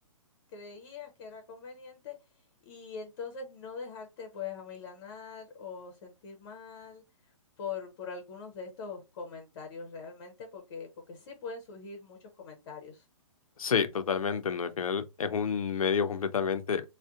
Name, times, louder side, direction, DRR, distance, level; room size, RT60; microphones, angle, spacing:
voice 1, 0.5-2.2 2.7-7.0 7.6-13.0, left 5 dB, 45° left, 0.7 m, -42 dB
voice 2, 13.6-16.8, left 6 dB, 85° left, 0.5 m, -29 dB
2.6 x 2.1 x 2.4 m
hypercardioid pair, 140°, 17 cm